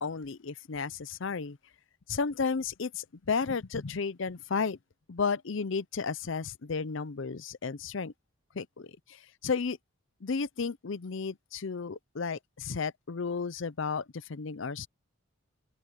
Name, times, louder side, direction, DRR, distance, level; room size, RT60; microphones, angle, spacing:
voice 1, 0.0-1.6 2.1-4.8 5.1-8.1 8.5-9.8 10.2-14.9, left 5 dB, 60° left, 0.6 m, -33 dB
open air
head